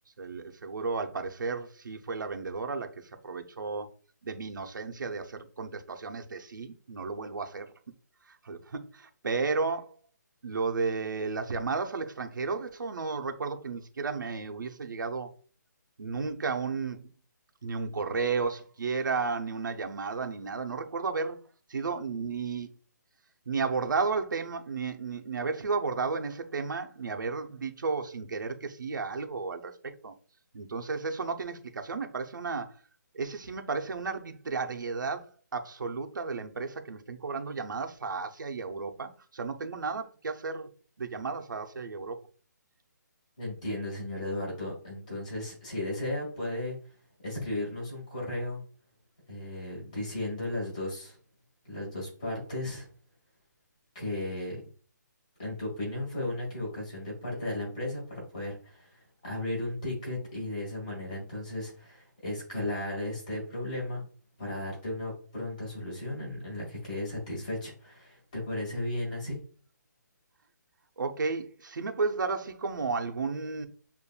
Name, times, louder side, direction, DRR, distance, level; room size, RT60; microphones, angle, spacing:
voice 1, 0.2-3.9 4.2-7.7 8.4-9.9 10.4-15.3 16.0-17.0 17.6-21.4 21.7-22.7 23.5-30.1 30.5-32.7 33.1-40.7 41.0-42.2 71.0-73.7, right 4 dB, 85° right, 0.7 m, -33 dB
voice 2, 43.4-46.8 47.2-48.6 49.3-51.2 51.6-52.9 54.0-54.6 55.4-64.0 64.4-69.4, left 1 dB, 25° left, 1.8 m, -35 dB
6.8 x 2.6 x 2.3 m
hypercardioid pair, 180°, 10 cm